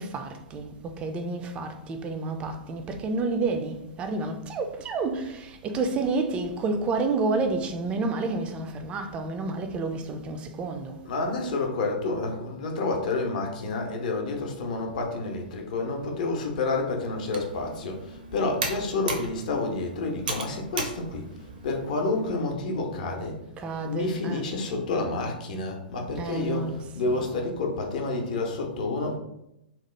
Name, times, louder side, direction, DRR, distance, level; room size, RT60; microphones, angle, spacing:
voice 1, 0.0-11.0 23.6-24.5 26.2-27.3, right 3 dB, 20° right, 0.3 m, -30 dB
voice 2, 11.0-21.2 21.6-23.4 23.8-29.2, left 3 dB, 55° left, 0.6 m, -29 dB
Computer keyboard, 17.1-22.3, right 3 dB, 60° right, 0.6 m, -37 dB
2.9 x 2.0 x 3.1 m
figure-of-eight pair, 105°, 5 cm